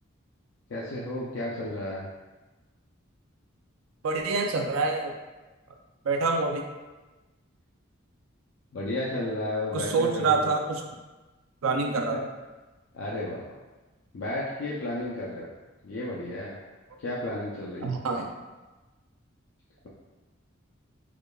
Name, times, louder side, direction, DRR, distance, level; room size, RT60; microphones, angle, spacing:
voice 1, 0.7-2.1 8.7-10.5 12.9-13.4 14.1-15.5 15.8-16.6 17.0-17.9, left 1 dB, 65° left, -5 dB, 0.4 m, -32 dB
voice 2, 4.0-5.1 6.0-6.6 9.7-10.8 11.6-12.2 17.8-18.3, right 4 dB, 90° right, 3 dB, 0.4 m, -26 dB
4.8 x 2.3 x 2.2 m, 1.2 s
head